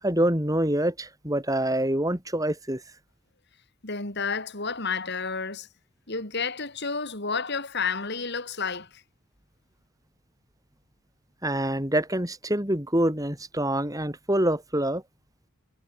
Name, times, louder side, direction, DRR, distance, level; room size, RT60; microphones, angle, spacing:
voice 1, 0.0-2.8 11.4-15.0, right 1 dB, 15° right, 4.6 m, -26 dB
voice 2, 3.8-5.7 6.1-9.0, left 5 dB, 50° left, 4.7 m, -31 dB
head